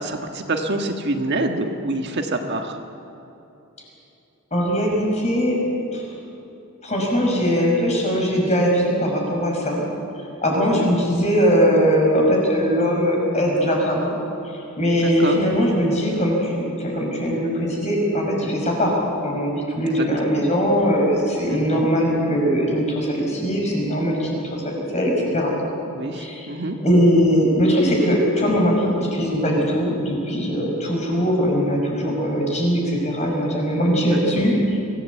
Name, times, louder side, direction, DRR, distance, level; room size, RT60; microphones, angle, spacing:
voice 1, 0.0-2.8 10.6-10.9 15.0-15.4 19.9-20.4 21.4-21.9 25.9-26.8 34.1-34.5, right 2 dB, 50° right, 4 dB, 1.6 m, -27 dB
voice 2, 4.5-5.6 5.9-6.0 6.8-9.8 10.4-14.2 14.8-18.9 19.2-24.4 24.6-25.5 26.1-26.5 26.8-34.8, equal, 30° left, -1 dB, 5.7 m, -20 dB
25.0 x 16.5 x 8.3 m, 3.0 s
head